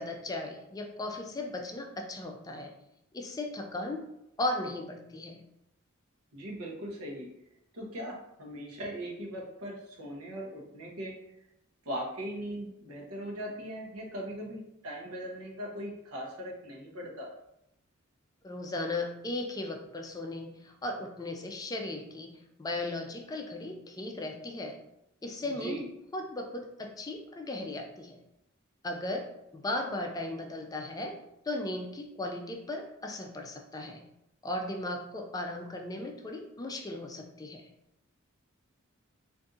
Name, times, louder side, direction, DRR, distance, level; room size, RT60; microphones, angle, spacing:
voice 1, 0.0-2.7 3.1-4.0 4.4-5.4 18.4-24.8 25.2-25.8 26.1-28.2 28.8-29.3 29.5-31.2 31.4-34.0 34.4-37.7, left 2 dB, 20° left, 3 dB, 0.4 m, -36 dB
voice 2, 6.3-7.3 7.7-11.3 11.8-17.3 25.4-25.9, equal, 85° right, -1 dB, 0.9 m, -39 dB
2.6 x 2.6 x 3.5 m, 0.82 s
head